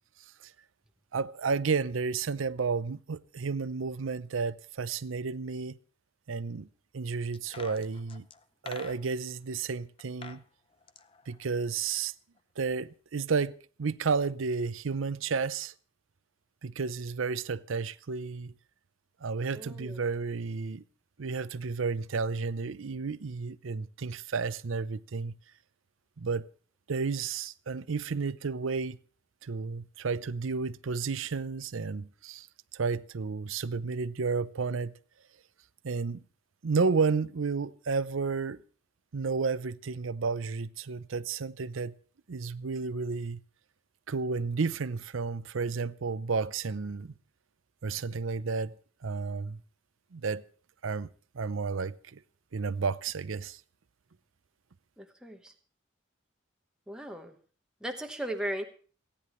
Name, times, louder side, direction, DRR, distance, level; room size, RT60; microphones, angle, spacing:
voice 1, 1.1-5.8 6.3-6.7 6.9-8.2 8.6-10.4 11.3-12.1 12.6-15.7 16.6-18.5 19.2-20.8 21.2-25.3 26.2-26.4 26.9-29.0 29.4-32.5 32.7-34.9 35.8-36.2 36.6-38.6 39.1-41.9 42.3-43.4 44.1-47.1 47.8-48.7 49.0-49.6 50.1-50.4 50.8-51.1 51.3-52.2 52.5-53.6, right 4 dB, 85° right, 0.6 m, -32 dB
sound 1, 7.3-9.3 10.0-10.4 10.7-12.1 12.4-12.5, left 5 dB, 25° left, 0.6 m, -47 dB
voice 2, 19.5-20.0 55.0-55.5 56.9-57.3 57.8-58.6, right 1 dB, 5° right, 1.2 m, -37 dB
29.0 x 10.0 x 3.2 m
head